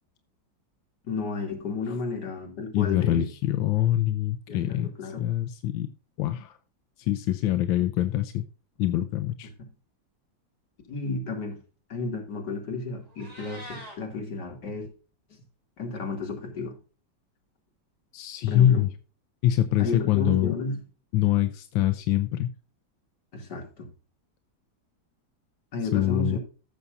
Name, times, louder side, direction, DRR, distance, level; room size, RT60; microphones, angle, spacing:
voice 1, 1.0-3.2 4.5-5.3 9.6-9.7 10.9-11.6 11.9-14.9 15.8-16.7 18.5-18.9 19.8-20.8 23.3-23.9 25.7-26.4, left 3 dB, 60° left, 3 dB, 3.2 m, -32 dB
voice 2, 2.7-5.9 6.2-6.6 7.0-8.4 8.8-9.5 18.1-18.9 19.4-20.5 21.1-22.5 25.9-26.4, left 12 dB, 90° left, 9 dB, 1.4 m, -24 dB
Meow, 13.0-14.0, equal, 20° right, 3.6 m, -43 dB
15.5 x 7.0 x 2.5 m, 0.35 s
omnidirectional pair, 2.1 m